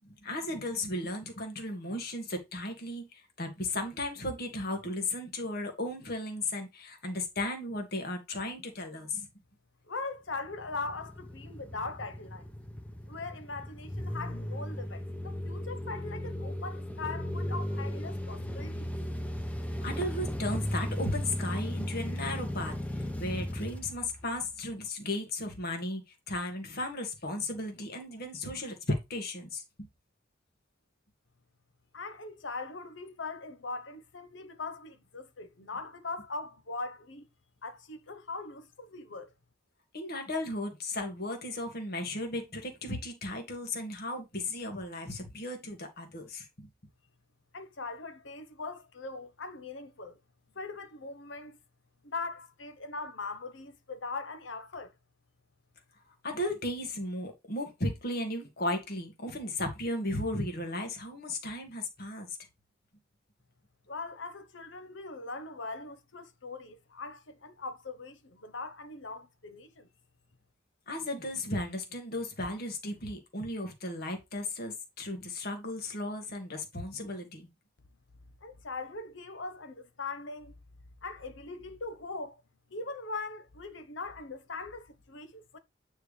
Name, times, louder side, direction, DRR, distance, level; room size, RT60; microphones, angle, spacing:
voice 1, 0.0-9.3 14.3-14.4 19.8-29.6 39.9-46.7 56.2-62.4 70.9-77.5, left 1 dB, 55° left, 2.0 m, -35 dB
voice 2, 9.9-12.4 13.1-18.9 31.9-37.3 37.6-39.3 47.5-50.2 50.5-51.6 52.0-54.9 63.9-69.9 78.4-80.6 81.0-82.4 82.7-85.6, left 3 dB, 90° left, 1.1 m, -40 dB
sound 1, 10.3-24.7, left 1 dB, 10° left, 0.8 m, -36 dB
9.2 x 4.6 x 3.4 m
head